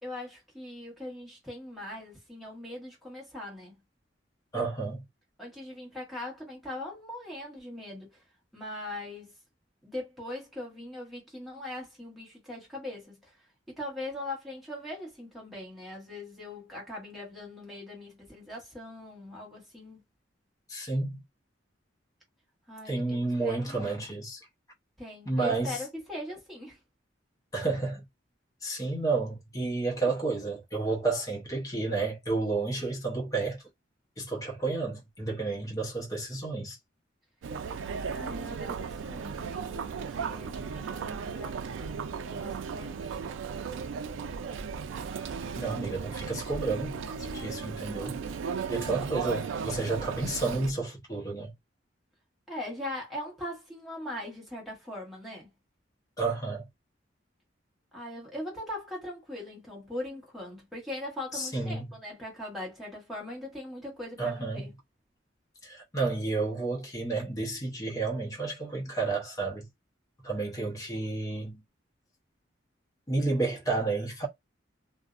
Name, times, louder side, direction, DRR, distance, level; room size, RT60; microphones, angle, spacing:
voice 1, 0.0-3.8 5.4-8.2 8.5-9.3 9.8-13.4 13.7-20.0 22.7-24.0 25.0-26.8 38.1-43.1 52.5-55.5 57.9-64.7, left 1 dB, ahead, 1.1 m, -40 dB
voice 2, 4.5-5.0 20.7-21.2 22.8-24.4 25.3-25.8 27.5-28.0 28.6-33.6 34.2-36.8 45.6-48.2 48.7-51.5 56.2-56.6 61.3-61.9 64.2-64.6 65.6-69.7 70.2-71.6 73.1-74.3, right 3 dB, 20° left, 0.7 m, -31 dB
Chatter, 37.4-50.7, right 6 dB, 80° right, 0.3 m, -36 dB
2.5 x 2.0 x 2.4 m
head